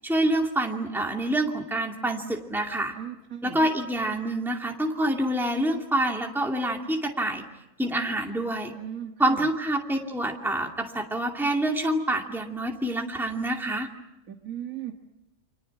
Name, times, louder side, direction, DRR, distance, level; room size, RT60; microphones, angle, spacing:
voice 1, 0.0-3.0 3.4-7.4 7.8-8.7 9.2-13.9, right 1 dB, ahead, 1 dB, 2.4 m, -27 dB
voice 2, 3.0-3.6 8.8-9.5 14.3-14.9, right 10 dB, 70° right, 2 dB, 2.0 m, -37 dB
30.0 x 26.5 x 6.0 m, 0.91 s
omnidirectional pair, 1.5 m